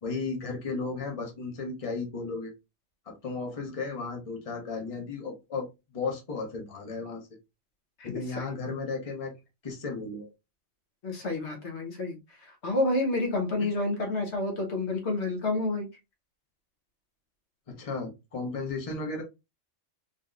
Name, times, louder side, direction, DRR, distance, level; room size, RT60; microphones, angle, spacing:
voice 1, 0.0-2.5 3.1-7.3 8.0-9.4 9.6-10.3 17.7-19.2, left 4 dB, 30° left, 1.0 m, -34 dB
voice 2, 8.0-8.5 11.0-15.9, left 2 dB, 65° left, 1.2 m, -29 dB
3.9 x 2.8 x 2.4 m
omnidirectional pair, 1.3 m